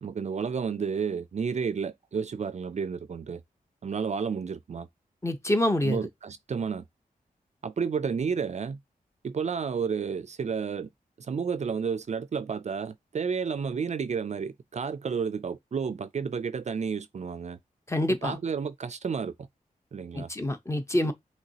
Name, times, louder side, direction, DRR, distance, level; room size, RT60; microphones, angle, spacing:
voice 1, 0.0-3.4 3.8-4.9 5.8-6.8 7.6-8.8 9.2-10.9 11.3-17.6 18.1-19.3 19.9-20.3, right 6 dB, 50° right, 0.4 m, -31 dB
voice 2, 5.2-6.1 17.9-18.4 20.1-21.1, left 1 dB, 20° left, 0.7 m, -26 dB
5.8 x 3.1 x 2.8 m
wide cardioid pair, 85°, 15 cm